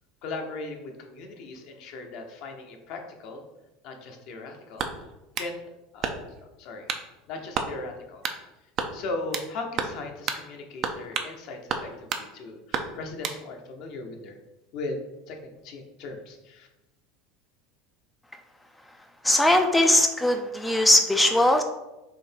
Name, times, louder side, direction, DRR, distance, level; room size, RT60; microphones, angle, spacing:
voice 1, 0.2-3.4 3.8-4.9 5.4-6.2 6.6-6.9 7.3-8.3 8.9-14.4 14.7-15.0 15.3-16.7, left 3 dB, 60° left, 3 dB, 0.8 m, -38 dB
sound 1, 4.8-5.5 6.0-6.4 6.9-7.1 7.5-7.7 8.2-8.4 8.8-9.5 9.8-10.0 10.3-10.4 10.8-11.3 11.7-12.3 12.7-13.4, right 6 dB, 45° right, 0.5 m, -31 dB
voice 2, 19.2-21.6, left 1 dB, 10° left, 4 dB, 0.4 m, -20 dB
3.8 x 2.7 x 4.4 m, 0.99 s
hypercardioid pair, 85°, 0 cm